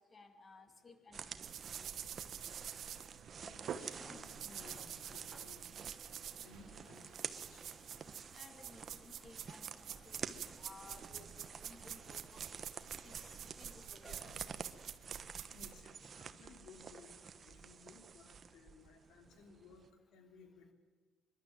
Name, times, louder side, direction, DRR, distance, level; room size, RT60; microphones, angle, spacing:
voice 1, 0.1-1.3 1.6-1.9 8.3-12.6 13.0-14.2, left 3 dB, 30° left, 7 dB, 2.3 m, -59 dB
sound 1, 1.1-19.9, right 6 dB, 40° right, 1.1 m, -50 dB
sound 2, 1.4-15.8, right 9 dB, 65° right, 1.4 m, -48 dB
voice 2, 3.4-5.7 6.4-7.9 15.5-19.8 20.1-20.7, left 5 dB, 80° left, 4 dB, 3.2 m, -60 dB
sound 3, 3.9-14.9 15.7-15.8 19.2-19.3, right 1 dB, ahead, 3.9 m, -61 dB
26.0 x 12.0 x 9.3 m, 1.5 s
cardioid pair, 120°, 0 cm